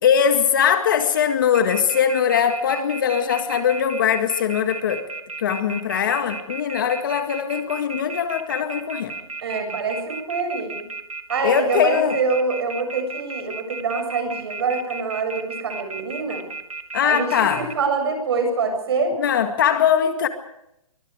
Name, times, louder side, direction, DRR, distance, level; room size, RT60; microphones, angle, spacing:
voice 1, 0.0-5.1 5.4-9.2 11.4-12.2 16.9-17.7 19.2-20.3, left 8 dB, 35° left, 7 dB, 2.0 m, -21 dB
sound 1, 1.5-17.7, right 4 dB, 85° right, 2.7 m, -34 dB
voice 2, 9.4-10.8 11.3-16.4 17.0-19.2, right 4 dB, 45° right, 6 dB, 7.6 m, -25 dB
27.0 x 24.0 x 5.0 m, 0.81 s
hypercardioid pair, 170°, 18 cm